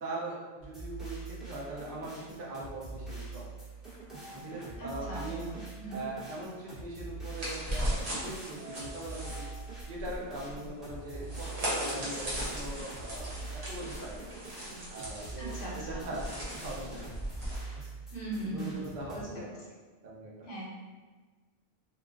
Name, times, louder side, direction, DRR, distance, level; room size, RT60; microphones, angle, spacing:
voice 1, 0.0-3.5 4.3-5.5 5.9-9.5 9.9-14.3 14.9-16.3 16.6-17.0 17.8-17.9 18.5-19.6 20.0-20.3, right 2 dB, 60° right, -4 dB, 0.7 m, -41 dB
sound 1, 0.6-19.2, right 3 dB, ahead, 0.5 m, -44 dB
sound 2, 4.1-6.0 8.6-10.0, right 2 dB, 35° left, 0.8 m, -50 dB
voice 2, 4.8-6.0 15.4-16.1 18.1-18.8 19.1-19.5 20.4-20.7, right 2 dB, 65° left, -5 dB, 0.7 m, -39 dB
sound 3, 7.4-17.6, equal, 80° right, 1.1 m, -37 dB
2.3 x 2.2 x 2.4 m, 1.4 s
omnidirectional pair, 1.1 m